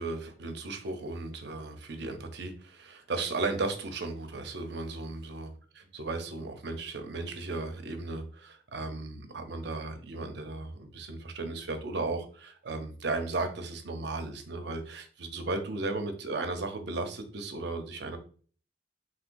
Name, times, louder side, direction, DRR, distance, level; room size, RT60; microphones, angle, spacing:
voice 1, 0.0-5.5 5.8-18.2, right 3 dB, 65° right, 6 dB, 0.7 m, -35 dB
5.9 x 2.9 x 2.6 m, 0.43 s
head